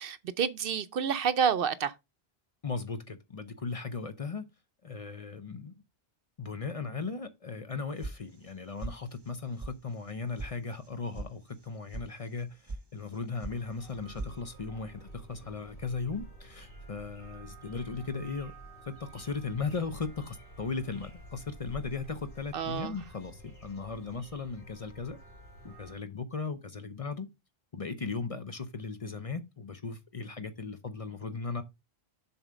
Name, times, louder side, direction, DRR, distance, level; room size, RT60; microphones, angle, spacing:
voice 1, 0.0-1.9 22.5-23.0, right 7 dB, 65° right, 0.8 m, -29 dB
voice 2, 2.6-4.5 4.8-5.8 6.4-18.5 18.8-25.2 25.6-27.3 27.7-31.6, left 4 dB, 40° left, 0.7 m, -37 dB
sound 1, 8.0-8.5 8.8-9.3 9.6-9.7 10.1-10.5 10.8-11.3 11.6-12.0 12.4-12.8 13.1-13.6 13.8-14.3, right 2 dB, 25° right, 0.7 m, -40 dB
sound 2, 13.5-25.9, right 1 dB, 85° left, 3.5 m, -50 dB
7.1 x 4.3 x 5.1 m
omnidirectional pair, 1.1 m